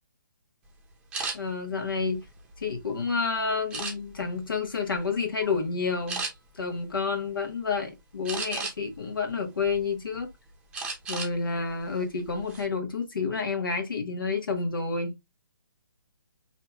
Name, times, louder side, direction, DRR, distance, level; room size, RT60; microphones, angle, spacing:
sound 1, 1.1-1.4 2.0-3.0 3.7-4.3 4.8-5.1 5.4-5.6 6.1-6.3 8.3-9.0 9.5-10.2 10.7-11.3 11.7-11.9 12.3-12.6, right 4 dB, 10° right, 0.7 m, -34 dB
voice 1, 1.3-2.2 2.6-6.2 6.5-10.3 11.1-15.2, left 4 dB, 80° left, 1.2 m, -29 dB
4.3 x 2.8 x 2.2 m
hypercardioid pair, 150°, 11 cm